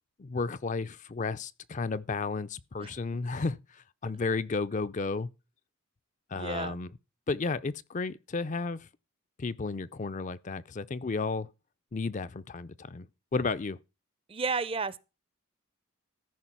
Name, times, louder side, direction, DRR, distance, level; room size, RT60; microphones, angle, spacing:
voice 1, 0.2-5.3 6.3-6.9 7.3-8.9 9.4-11.5 11.9-13.1 13.3-13.8, left 4 dB, 35° left, 0.4 m, -33 dB
voice 2, 6.4-6.8 14.3-15.0, right 4 dB, 25° right, 0.6 m, -32 dB
14.0 x 5.4 x 5.9 m
head